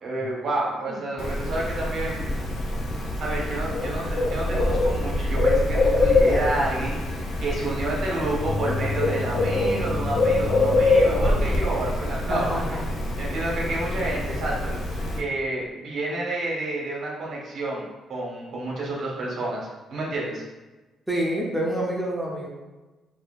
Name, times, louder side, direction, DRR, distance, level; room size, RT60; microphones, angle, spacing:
voice 1, 0.0-2.2 3.2-7.0 7.4-12.8 13.2-14.7 15.2-17.8 18.1-20.4, right 2 dB, 65° right, -3 dB, 1.1 m, -29 dB
Bird, 1.2-15.2, left 2 dB, 65° left, 0.7 m, -24 dB
voice 2, 12.3-12.8 21.1-22.5, right 1 dB, 5° right, -4 dB, 0.7 m, -27 dB
4.2 x 2.9 x 2.4 m, 1.2 s
cardioid pair, 90°, 0 cm